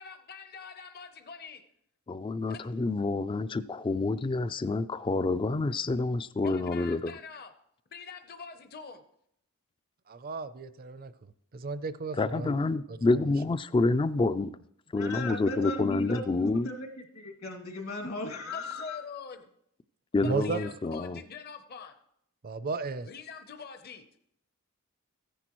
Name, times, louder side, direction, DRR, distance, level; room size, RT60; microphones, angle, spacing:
voice 1, 0.0-1.7 2.5-2.6 6.4-7.5 7.9-9.0 18.5-19.5 20.2-22.0 23.0-24.0, left 5 dB, 45° left, 0.8 m, -44 dB
voice 2, 2.1-7.1 12.2-14.6 14.9-16.7 20.1-21.2, left 3 dB, 20° left, 0.3 m, -28 dB
voice 3, 10.1-11.1 11.5-12.6 12.9-13.0 20.2-20.6 22.4-23.1, right 4 dB, 40° right, 0.5 m, -34 dB
voice 4, 14.9-16.9 17.1-19.0, left 2 dB, 65° left, 2.3 m, -37 dB
15.0 x 10.0 x 3.0 m
head